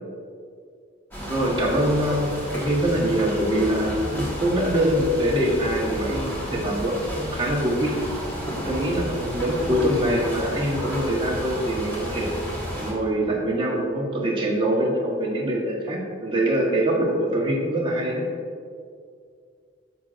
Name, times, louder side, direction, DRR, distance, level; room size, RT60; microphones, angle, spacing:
sound 1, 1.1-12.9, equal, 10° left, 1.5 m, -32 dB
voice 1, 1.2-7.9 8.5-12.3 12.7-18.3, right 1 dB, 25° right, -3 dB, 1.2 m, -24 dB
9.3 x 7.4 x 2.5 m, 2.3 s
head